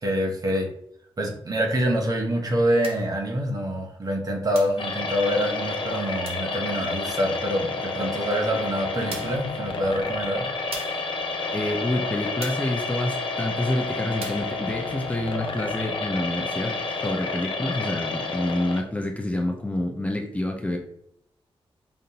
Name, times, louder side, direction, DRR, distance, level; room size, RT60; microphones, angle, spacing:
voice 1, 0.0-0.7 1.2-10.5, equal, 40° right, 1 dB, 0.9 m, -26 dB
sound 1, 2.8-3.1 4.5-4.9 6.2-6.5 8.3-8.4 9.1-9.5 10.7-11.1 12.4-12.7 14.2-14.5, right 3 dB, 90° right, 0.9 m, -39 dB
sound 2, 4.8-18.8, left 3 dB, 60° left, 0.6 m, -30 dB
voice 2, 11.5-20.8, left 1 dB, 15° left, 1 dB, 0.6 m, -28 dB
5.2 x 2.6 x 2.8 m, 0.73 s
wide cardioid pair, 115°, 10 cm